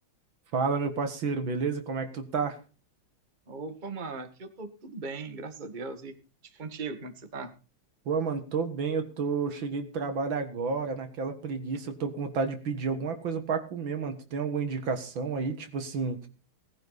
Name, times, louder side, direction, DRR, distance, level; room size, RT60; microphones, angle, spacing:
voice 1, 0.5-2.6 8.1-16.3, right 5 dB, 65° right, 8 dB, 2.4 m, -30 dB
voice 2, 3.5-6.1 6.4-7.5, right 4 dB, 25° right, 8 dB, 1.8 m, -39 dB
18.5 x 10.5 x 4.1 m, 0.35 s
omnidirectional pair, 2.3 m